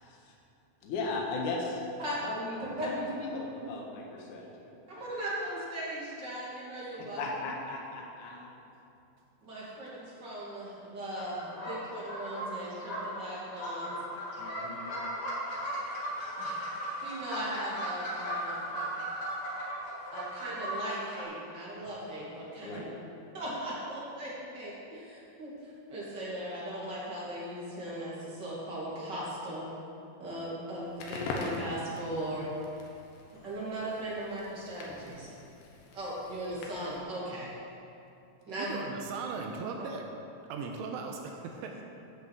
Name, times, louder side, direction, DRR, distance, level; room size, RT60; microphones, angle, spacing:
voice 1, 0.0-0.3 0.8-1.8 2.2-4.7 7.0-8.5 14.4-14.9 22.6-22.9, left 3 dB, 85° left, -2 dB, 1.7 m, -37 dB
voice 2, 4.9-7.2 9.5-13.9 16.3-16.5 17.0-18.7 20.1-22.8 23.3-29.7 30.2-32.5 32.8-32.9 33.3-35.3 35.9-37.5 38.5-38.8, right 1 dB, 40° right, -7 dB, 1.7 m, -38 dB
sound 1, 11.2-21.2, equal, 55° left, 1.6 m, -37 dB
Crackle, 30.9-37.0, left 3 dB, 70° left, 2.9 m, -43 dB
voice 3, 38.6-40.0 40.5-41.8, right 4 dB, 80° right, 2 dB, 3.1 m, -38 dB
11.0 x 6.5 x 7.5 m, 2.7 s
omnidirectional pair, 5.9 m